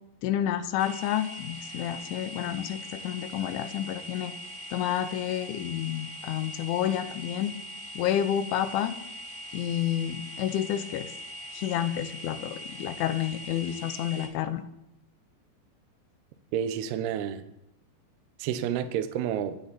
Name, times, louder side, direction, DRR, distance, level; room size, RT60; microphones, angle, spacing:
voice 1, 0.2-4.4 4.7-7.6 8.0-9.0 9.5-11.1 11.5-14.6, left 11 dB, 80° left, 3.1 m, -30 dB
sound 1, 0.8-14.3, equal, 20° right, 2.1 m, -42 dB
voice 2, 16.5-17.4 18.4-19.6, right 9 dB, 85° right, 2.3 m, -30 dB
26.0 x 9.6 x 4.1 m
omnidirectional pair, 5.8 m